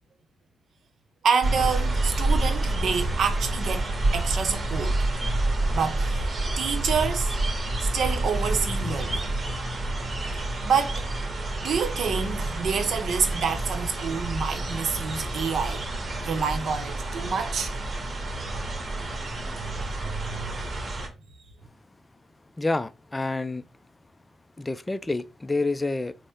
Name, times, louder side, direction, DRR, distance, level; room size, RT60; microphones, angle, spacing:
voice 1, 1.2-5.0 5.7-6.3 6.6-7.4 7.8-9.3 10.6-11.1 11.4-15.9 16.2-17.7 19.6-20.7 21.0-21.1, right 6 dB, 70° right, 0.7 m, -28 dB
sound 1, 1.4-21.1, right 2 dB, 45° right, 1.1 m, -28 dB
voice 2, 22.6-23.6 24.6-26.1, left 2 dB, 20° left, 0.3 m, -28 dB
3.5 x 2.0 x 4.2 m
cardioid pair, 90°, 0 cm